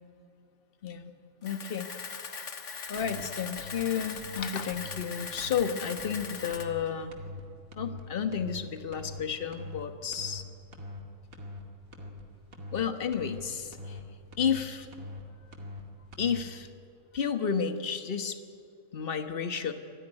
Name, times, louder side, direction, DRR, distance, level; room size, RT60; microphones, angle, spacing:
Camera, 1.4-6.6, left 5 dB, 60° left, 1.7 m, -40 dB
voice 1, 1.4-1.9 2.8-7.1 7.8-10.4 12.7-14.0 14.4-14.9 16.2-16.7 17.1-18.4 18.9-19.7, left 7 dB, 45° left, 8 dB, 1.4 m, -32 dB
sound 1, 3.0-3.2 3.6-3.8 4.2-4.4 4.7-5.0 5.4-5.6 6.0-6.2 6.5-6.8 7.1-7.4 7.7-8.0 8.3-8.6 8.9-9.2 9.5-9.8 10.1-10.4 10.7-11.0 11.3-11.6 11.9-12.2 12.5-12.8 13.1-13.4 13.7-14.0 14.3-14.6 14.9-15.2 15.5-15.8 16.1-16.4, left 2 dB, 85° right, 2.7 m, -42 dB
24.5 x 15.5 x 10.0 m, 2.3 s
omnidirectional pair, 1.4 m